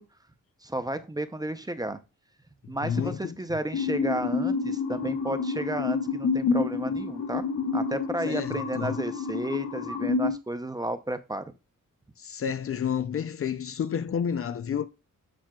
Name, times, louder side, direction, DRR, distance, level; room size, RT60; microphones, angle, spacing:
voice 1, 0.6-2.0 2.7-7.4 7.7-11.5, right 1 dB, 10° right, 0.5 m, -32 dB
voice 2, 2.8-3.4 8.2-9.0 12.2-14.9, left 8 dB, 45° left, 0.4 m, -30 dB
sound 1, 3.7-10.3, left 4 dB, 80° left, 1.2 m, -28 dB
7.4 x 5.9 x 2.3 m
cardioid pair, 105°, 32 cm